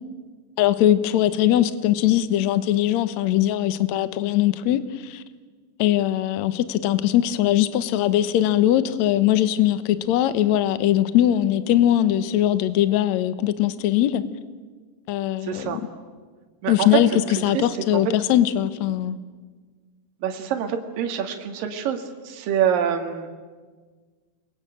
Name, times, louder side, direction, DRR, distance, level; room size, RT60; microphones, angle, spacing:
voice 1, 0.6-5.2 5.8-14.2 15.1-15.8 16.7-17.1 17.4-19.2, left 12 dB, 70° left, 13 dB, 1.9 m, -21 dB
voice 2, 15.4-15.8 16.6-16.9 17.5-17.6 17.9-18.0 20.2-23.3, right 8 dB, 65° right, 4 dB, 3.5 m, -26 dB
29.5 x 22.5 x 8.9 m, 1.5 s
omnidirectional pair, 4.4 m